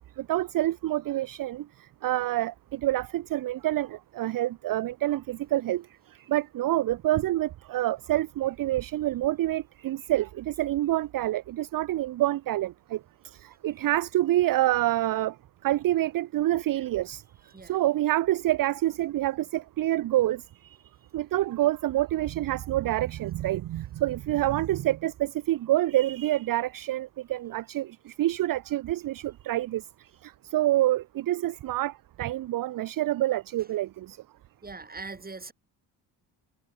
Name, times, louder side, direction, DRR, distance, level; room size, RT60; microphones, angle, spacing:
voice 1, 0.2-1.6 2.0-5.8 6.3-13.0 13.4-15.3 15.6-17.2 17.6-20.4 21.1-29.8 30.2-34.2, right 15 dB, 50° right, 0.6 m, -27 dB
voice 2, 34.6-35.5, right 3 dB, 20° right, 2.8 m, -41 dB
cardioid pair, 85°, 45 cm